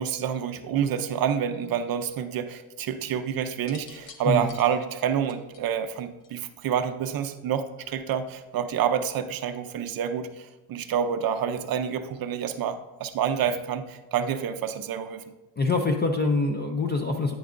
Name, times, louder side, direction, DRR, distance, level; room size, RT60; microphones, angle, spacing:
voice 1, 0.0-15.2, right 8 dB, 45° right, 9 dB, 0.5 m, -28 dB
sound 1, 3.5-6.7 7.8-8.1, left 6 dB, 65° left, 0.9 m, -50 dB
voice 2, 15.6-17.4, left 3 dB, 25° left, 4 dB, 0.3 m, -25 dB
10.0 x 9.4 x 2.5 m, 1.1 s
cardioid pair, 165°, 50 cm